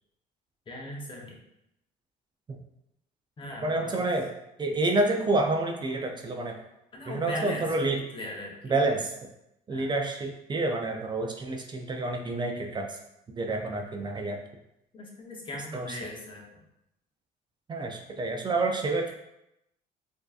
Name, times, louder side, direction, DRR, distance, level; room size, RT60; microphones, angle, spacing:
voice 1, 0.7-1.4 3.4-4.0 6.9-7.7 8.1-8.7 9.7-9.9 14.9-16.4, left 1 dB, 30° left, -1 dB, 0.9 m, -39 dB
voice 2, 3.6-4.3 4.6-6.6 7.1-8.0 8.7-9.1 9.7-13.0 13.3-14.4 15.7-15.9 17.7-19.1, right 2 dB, 25° right, 3 dB, 0.4 m, -28 dB
4.5 x 2.7 x 2.4 m, 0.84 s
cardioid pair, 110°, 17 cm